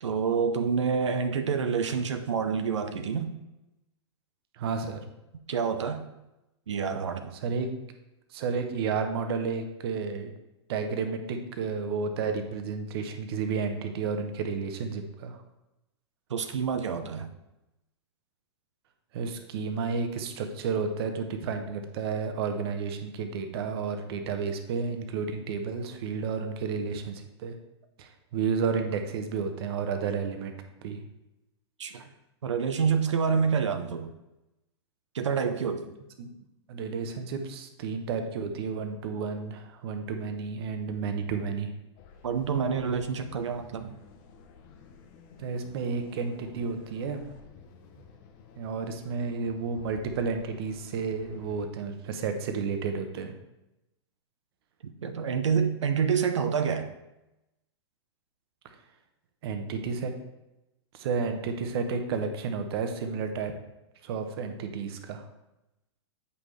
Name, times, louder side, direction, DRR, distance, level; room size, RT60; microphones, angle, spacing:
voice 1, 0.0-3.3 5.5-6.0 6.7-7.3 16.3-17.3 31.8-32.0 32.4-34.1 35.1-35.9 42.2-44.0 54.8-56.9, right 6 dB, 85° right, 7 dB, 0.7 m, -27 dB
voice 2, 4.5-5.0 7.4-7.7 8.3-10.3 10.7-15.4 19.1-27.5 28.0-30.5 30.8-31.0 36.2-36.3 36.7-41.7 45.4-47.2 48.6-53.3 59.4-60.1 60.9-63.5 64.0-65.3, right 5 dB, 60° right, 6 dB, 1.0 m, -31 dB
sound 1, 42.0-51.7, left 5 dB, 45° left, 0.9 m, -52 dB
8.3 x 5.5 x 3.2 m, 0.94 s
hypercardioid pair, 125°, 15 cm